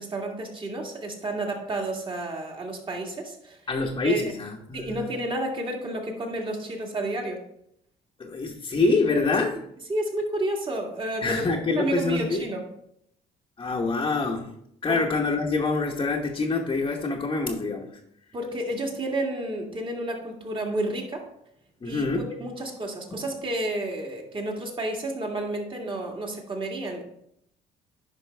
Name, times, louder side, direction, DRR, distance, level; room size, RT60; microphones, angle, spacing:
voice 1, 0.0-3.6 4.0-4.2 4.7-7.4 9.9-12.6 14.9-15.0 18.3-21.3 21.8-27.0, right 1 dB, 30° right, 1 dB, 2.0 m, -31 dB
voice 2, 3.7-5.0 8.2-9.6 11.2-12.4 13.6-14.5 14.8-18.0 21.8-22.3 23.1-23.2, left 3 dB, 25° left, -2 dB, 1.0 m, -26 dB
10.5 x 5.3 x 3.4 m, 0.75 s
cardioid pair, 110°, 17 cm